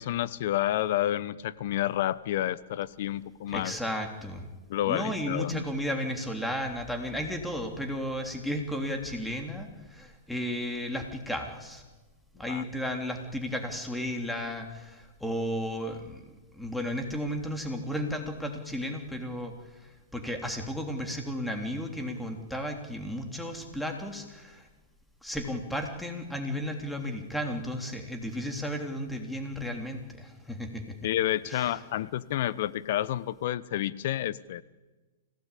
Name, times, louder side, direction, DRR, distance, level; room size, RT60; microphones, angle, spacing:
voice 1, 0.0-3.7 4.7-5.6 12.5-12.6 31.0-34.6, left 13 dB, 60° left, 18 dB, 0.9 m, -29 dB
voice 2, 3.5-4.5 4.9-11.8 12.3-16.2 16.5-19.5 19.8-24.7 25.2-30.9 31.4-31.8, equal, 5° left, 4 dB, 3.3 m, -34 dB
25.5 x 17.0 x 8.5 m, 1.2 s
hypercardioid pair, 120°, 0 cm